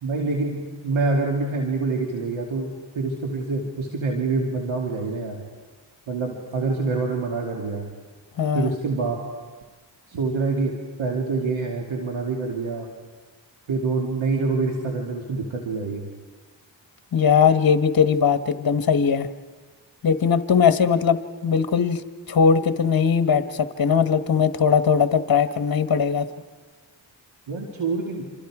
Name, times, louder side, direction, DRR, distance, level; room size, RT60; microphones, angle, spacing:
voice 1, 0.0-5.4 6.1-7.9 8.5-9.2 10.1-10.7 11.0-12.9 13.7-16.1 27.5-28.3, right 3 dB, 85° right, 0 dB, 2.6 m, -26 dB
voice 2, 8.4-8.7 17.1-19.3 20.0-22.0 22.3-26.3, left 6 dB, 50° left, 9 dB, 1.2 m, -20 dB
27.5 x 27.0 x 4.9 m, 1.4 s
cardioid pair, 55°, 46 cm